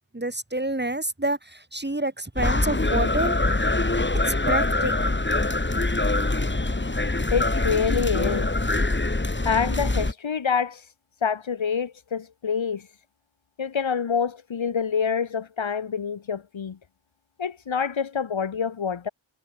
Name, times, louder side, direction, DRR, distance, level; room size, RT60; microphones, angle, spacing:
voice 1, 0.1-3.4 4.2-5.2, right 2 dB, 20° right, 4.3 m, -28 dB
sound 1, 2.4-10.1, left 2 dB, 20° left, 2.9 m, -24 dB
voice 2, 7.3-8.5 9.5-10.8 11.2-12.8 13.6-16.8 17.4-19.1, left 6 dB, 65° left, 1.8 m, -26 dB
cardioid pair, 55°, 50 cm